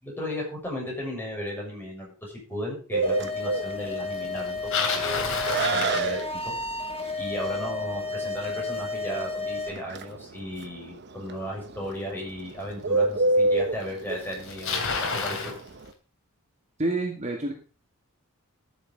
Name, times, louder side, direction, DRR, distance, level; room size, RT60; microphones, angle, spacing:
voice 1, 0.0-5.3 5.7-6.5 7.2-15.5, equal, 10° left, -2 dB, 6.7 m, -35 dB
Bird, 2.9-15.9, right 2 dB, 50° right, 1.0 m, -29 dB
sound 1, 3.0-9.7, left 3 dB, 25° left, 1.9 m, -32 dB
Bicycle, 4.4-6.7 11.8-11.9 12.7-12.8 13.8-13.9 14.1-15.6, left 4 dB, 60° left, 2.9 m, -29 dB
voice 2, 16.8-17.5, right 2 dB, 30° right, 1 dB, 2.2 m, -27 dB
13.5 x 7.4 x 5.3 m, 0.36 s
head